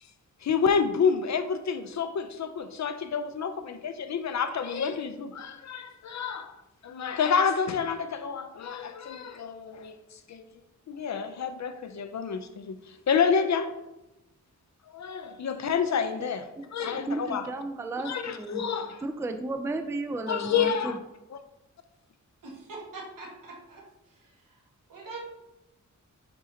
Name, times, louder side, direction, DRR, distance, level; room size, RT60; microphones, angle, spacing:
voice 1, 0.4-6.5 6.8-10.0 10.3-10.4 10.9-12.8 13.1-13.7 14.9-16.5 16.7-17.5 18.0-19.0 20.3-21.0 21.3-21.4, left 6 dB, 60° left, 0.5 m, -28 dB
voice 2, 16.9-18.6 19.0-21.0, right 2 dB, 10° right, 0.3 m, -33 dB
voice 3, 22.4-23.8 24.9-25.2, right 3 dB, 90° right, 1.6 m, -42 dB
8.9 x 3.8 x 2.8 m
wide cardioid pair, 165°, 32 cm